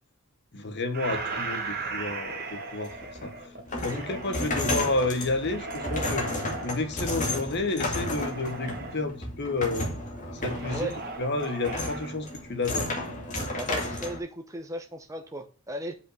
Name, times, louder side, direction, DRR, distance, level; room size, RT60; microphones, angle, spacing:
voice 1, 0.5-3.0 3.2-3.5 3.8-6.3 6.6-9.9 10.3-10.9 11.2-12.9, left 2 dB, 50° left, 1.4 m, -30 dB
sound 1, 0.9-4.7 5.3-6.7 8.0-9.1 10.4-12.2, right 3 dB, 45° right, 1.8 m, -37 dB
sound 2, 2.9-14.2, left 1 dB, 35° left, 2.1 m, -33 dB
voice 2, 13.6-16.0, right 1 dB, 15° right, 0.9 m, -36 dB
5.6 x 5.4 x 6.4 m
head